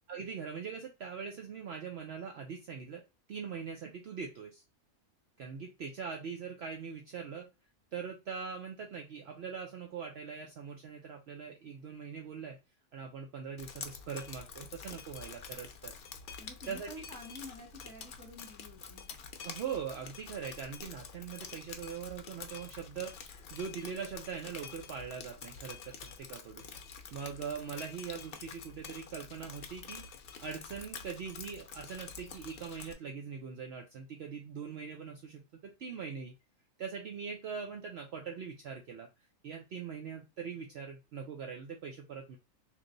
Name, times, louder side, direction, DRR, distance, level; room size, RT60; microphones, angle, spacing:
voice 1, 0.1-3.0 3.3-4.6 5.4-7.5 7.9-12.6 12.9-15.9 16.7-16.9 19.4-26.7 27.1-30.1 30.4-36.3 36.8-39.1 39.4-42.4, right 6 dB, 60° right, 2 dB, 0.8 m, -42 dB
Drip, 13.6-32.9, left 6 dB, 60° left, 0.7 m, -48 dB
voice 2, 16.4-19.1, left 2 dB, 5° left, -2 dB, 1.5 m, -49 dB
3.2 x 2.6 x 3.8 m, 0.26 s
omnidirectional pair, 1.4 m